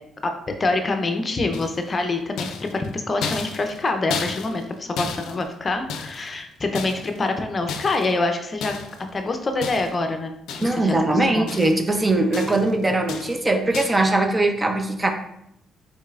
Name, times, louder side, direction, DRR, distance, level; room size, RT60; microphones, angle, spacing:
voice 1, 0.2-8.8 9.1-11.5, left 2 dB, 35° left, 5 dB, 0.6 m, -26 dB
sound 1, 1.5-2.0 2.4-6.4 6.7-7.3 7.7-8.2 8.6-9.0 9.6-10.1 10.5-11.0 11.2-11.9 12.3-12.7 13.1-13.4 13.7-14.1, left 5 dB, 90° left, 0.5 m, -33 dB
voice 2, 10.6-15.1, right 2 dB, 20° right, 5 dB, 0.6 m, -21 dB
5.3 x 4.1 x 2.4 m, 0.76 s
cardioid pair, 90°, 0 cm